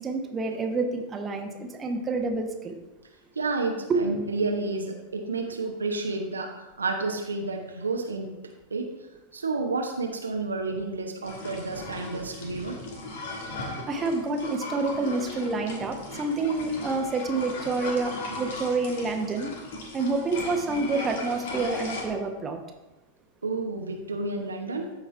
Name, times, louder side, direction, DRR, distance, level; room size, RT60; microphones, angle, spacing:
voice 1, 0.0-2.8 3.9-4.3 13.6-19.5 19.9-22.6, right 3 dB, 20° right, 3 dB, 1.1 m, -28 dB
voice 2, 3.3-8.4 8.7-8.9 9.3-12.8 23.4-24.9, right 3 dB, 75° right, 3 dB, 0.9 m, -30 dB
sound 1, 11.2-22.0, left 2 dB, 55° left, 1.5 m, -37 dB
13.5 x 4.9 x 3.4 m, 1.0 s
figure-of-eight pair, 90°, 0 cm